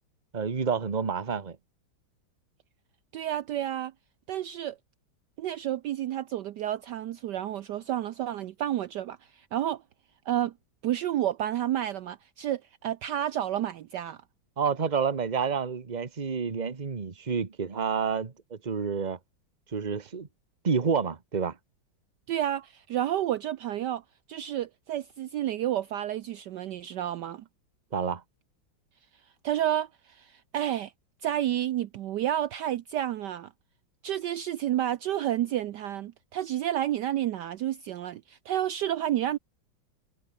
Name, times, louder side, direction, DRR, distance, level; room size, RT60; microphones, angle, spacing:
voice 1, 0.3-1.6 14.6-19.2 19.7-20.3 20.6-21.5 27.9-28.2, right 6 dB, 25° right, 1.3 m, -29 dB
voice 2, 3.1-3.9 4.3-4.8 5.4-9.8 10.3-10.5 10.8-14.2 22.3-24.0 24.3-27.4 29.4-30.9 31.2-33.5 34.0-39.4, right 12 dB, 70° right, 1.2 m, -30 dB
omnidirectional pair, 2.1 m